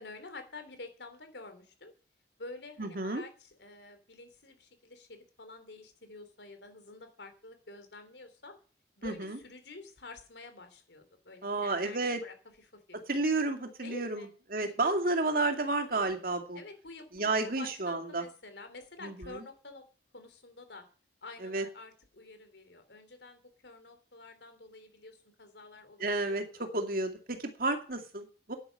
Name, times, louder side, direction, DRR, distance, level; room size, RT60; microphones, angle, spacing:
voice 1, 0.0-1.9 2.4-8.5 9.0-12.3 12.9-13.0 13.8-14.3 14.6-15.1 16.5-19.8 20.1-20.8 21.2-26.6, left 3 dB, 80° left, 8 dB, 3.2 m, -49 dB
voice 2, 2.8-3.2 9.0-9.4 11.4-12.2 13.1-16.6 17.1-18.2 19.0-19.4 21.4-21.7 26.0-28.6, right 2 dB, 55° right, 6 dB, 2.3 m, -31 dB
10.0 x 9.7 x 6.5 m, 0.38 s
head